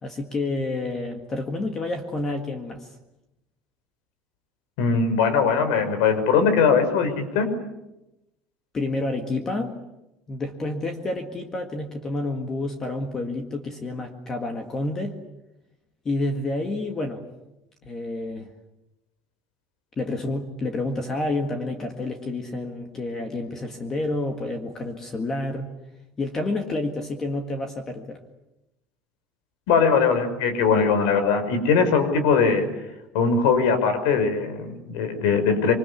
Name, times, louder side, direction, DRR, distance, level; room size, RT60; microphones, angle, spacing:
voice 1, 0.0-2.9 8.7-9.8 10.3-15.2 16.1-17.2 17.8-18.5 20.0-25.7 26.2-28.2, left 2 dB, 20° left, 5 dB, 1.8 m, -29 dB
voice 2, 4.8-7.5 29.7-32.7 33.1-35.7, left 5 dB, 80° left, 8 dB, 5.7 m, -20 dB
26.5 x 24.5 x 8.4 m, 0.95 s
cardioid pair, 180°, 3 cm